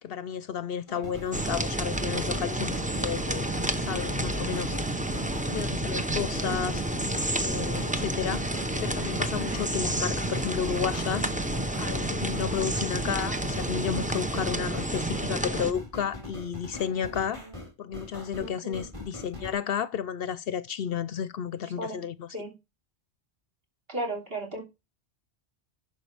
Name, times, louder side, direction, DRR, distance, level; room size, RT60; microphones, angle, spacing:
voice 1, 0.0-3.5 3.7-4.8 5.5-6.8 7.4-8.5 8.8-11.3 11.8-17.5 17.8-22.3, left 8 dB, 65° left, 0.8 m, -32 dB
sound 1, 0.9-19.5, left 1 dB, 30° right, 3.7 m, -42 dB
sound 2, 1.2-14.5, equal, 80° right, 2.9 m, -52 dB
sound 3, 1.3-15.7, right 1 dB, 10° right, 0.6 m, -30 dB
voice 2, 18.4-18.8 21.8-22.0 22.3-22.5 23.9-24.6, right 1 dB, 60° right, 3.3 m, -34 dB
11.0 x 5.5 x 3.3 m
omnidirectional pair, 1.1 m